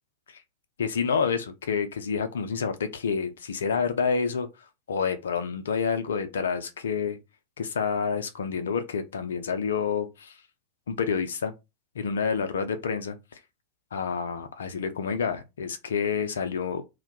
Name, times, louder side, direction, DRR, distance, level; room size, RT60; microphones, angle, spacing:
voice 1, 0.8-4.5 4.9-7.2 7.6-10.3 10.9-11.5 12.0-13.2 13.9-16.8, left 6 dB, 65° left, 0.4 m, -28 dB
2.1 x 2.1 x 2.8 m
figure-of-eight pair, 90°, 0 cm